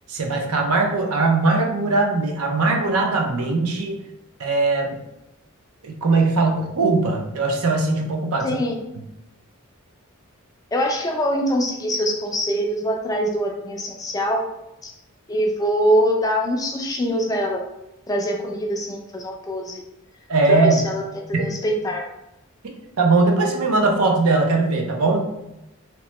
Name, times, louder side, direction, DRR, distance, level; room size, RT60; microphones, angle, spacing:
voice 1, 0.1-4.0 4.4-5.0 5.8-8.6 20.3-20.8 21.3-21.5 22.6-25.3, right 3 dB, 90° right, 2 dB, 0.6 m, -20 dB
voice 2, 8.4-8.7 10.7-14.4 14.8-14.9 15.3-17.6 18.1-19.8 20.5-21.0 21.4-22.1, equal, 15° left, 1 dB, 0.3 m, -23 dB
2.9 x 2.1 x 2.9 m, 0.89 s
head